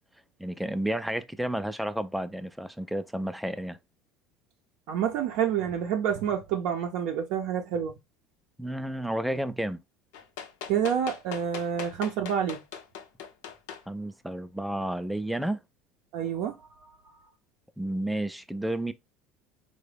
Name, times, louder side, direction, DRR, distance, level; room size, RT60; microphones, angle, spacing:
voice 1, 0.4-3.8 8.6-9.8 13.9-15.6 17.8-18.9, right 1 dB, ahead, 0.3 m, -31 dB
voice 2, 4.9-8.0 10.7-12.6 16.1-16.5 16.8-17.2, right 8 dB, 70° right, 0.5 m, -28 dB
sound 1, 10.1-13.8 14.8-14.9, left 8 dB, 85° left, 0.6 m, -40 dB
3.7 x 2.1 x 3.3 m
supercardioid pair, 125°, 0 cm